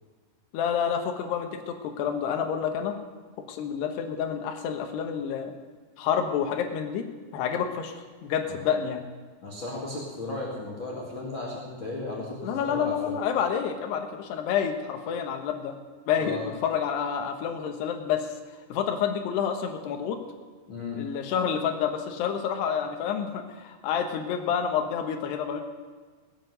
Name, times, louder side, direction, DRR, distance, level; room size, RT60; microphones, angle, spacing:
voice 1, 0.5-3.0 3.5-5.5 6.0-7.1 7.3-7.9 8.2-9.1 12.4-15.7 16.1-18.3 18.7-20.2 20.9-25.6, left 8 dB, 70° left, 5 dB, 2.9 m, -28 dB
voice 2, 9.4-13.2 16.2-16.5 20.7-21.0, left 2 dB, 40° left, -4 dB, 1.9 m, -35 dB
19.0 x 7.6 x 8.0 m, 1.4 s
omnidirectional pair, 5.8 m